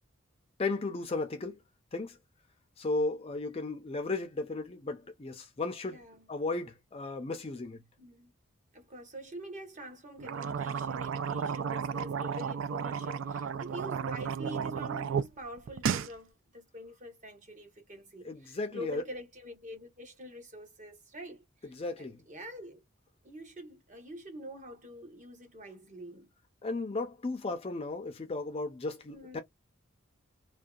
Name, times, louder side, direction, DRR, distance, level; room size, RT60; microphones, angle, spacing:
voice 1, 0.6-1.6 1.9-2.2 2.8-6.0 6.3-7.8 18.2-19.0 21.7-22.2 26.6-29.4, left 3 dB, 30° left, 0.4 m, -35 dB
voice 2, 5.9-6.3 8.0-8.3 8.7-22.8 23.2-26.3 29.1-29.4, equal, 35° right, 0.9 m, -46 dB
sound 1, 10.2-15.3 15.6-16.1, right 6 dB, 65° right, 0.3 m, -33 dB
2.6 x 2.1 x 2.3 m
head